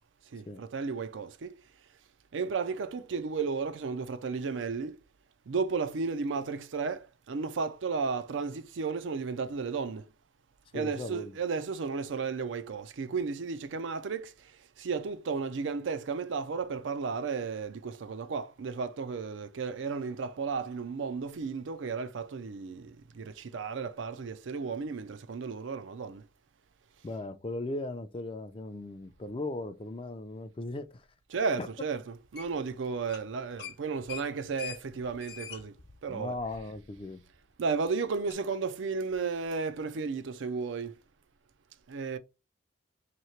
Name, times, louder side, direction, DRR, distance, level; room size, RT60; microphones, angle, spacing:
voice 1, 0.3-1.6 2.3-5.0 5.5-10.1 10.7-26.3 31.3-36.4 37.6-41.0 41.9-42.2, right 5 dB, 80° right, 0.5 m, -34 dB
voice 2, 10.7-11.3 27.0-31.0 31.6-31.7 36.1-37.2, left 2 dB, 30° left, 0.4 m, -37 dB
sound 1, 32.4-32.7 33.0-33.3 33.6-37.0 37.3-37.4 38.3-38.4, left 9 dB, 60° left, 0.8 m, -44 dB
3.0 x 2.8 x 4.4 m
head